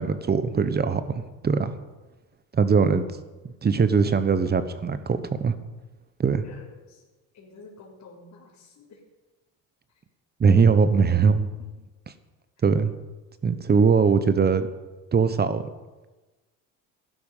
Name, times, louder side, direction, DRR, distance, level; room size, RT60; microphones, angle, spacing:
voice 1, 0.0-1.8 2.5-3.0 3.4-5.5 6.2-6.4 10.4-11.5 12.6-12.9 13.4-14.7 15.1-15.6, right 5 dB, 25° right, 12 dB, 1.1 m, -21 dB
voice 2, 6.4-7.0 7.3-9.0 9.9-10.0 11.6-11.8, left 3 dB, 50° left, -6 dB, 4.0 m, -50 dB
15.5 x 12.0 x 5.6 m, 1.2 s
supercardioid pair, 105°, 38 cm